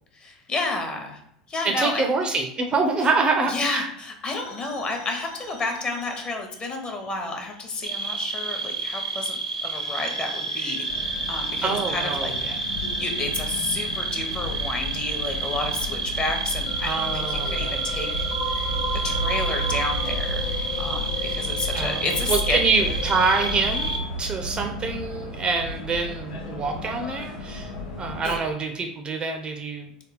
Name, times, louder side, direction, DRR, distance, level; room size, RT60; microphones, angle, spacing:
voice 1, 0.1-1.2 1.5-2.1 3.5-12.3 12.6-12.7 13.0-18.2 19.0-20.4 20.8-23.0 28.2-28.4, left 2 dB, 30° left, 4 dB, 0.7 m, -30 dB
voice 2, 1.6-3.9 11.6-12.6 16.8-17.8 21.7-27.7 28.0-29.9, right 4 dB, 25° right, 4 dB, 0.4 m, -26 dB
sound 1, 4.3-7.1 7.4-8.6 9.8-24.1, left 1 dB, 45° left, 1.1 m, -35 dB
sound 2, 7.8-24.0, right 4 dB, 85° right, 0.4 m, -30 dB
sound 3, 10.9-28.4, left 1 dB, 65° left, 0.7 m, -33 dB
3.3 x 2.2 x 3.3 m, 0.73 s
figure-of-eight pair, 80°, 4 cm